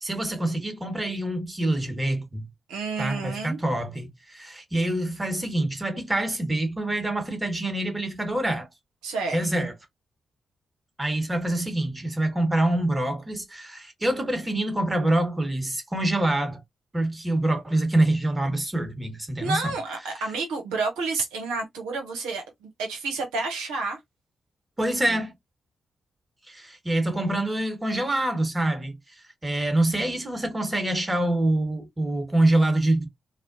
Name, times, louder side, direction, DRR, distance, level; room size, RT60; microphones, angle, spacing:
voice 1, 0.0-2.5 3.0-8.7 9.3-9.7 11.0-16.6 16.9-19.7 20.1-20.2 24.8-25.3 26.5-33.1, right 1 dB, 20° right, 1.5 m, -26 dB
voice 2, 2.7-3.6 9.0-9.4 19.4-24.0, right 3 dB, 90° right, 0.8 m, -30 dB
4.1 x 2.1 x 2.7 m
hypercardioid pair, 40°, 0 cm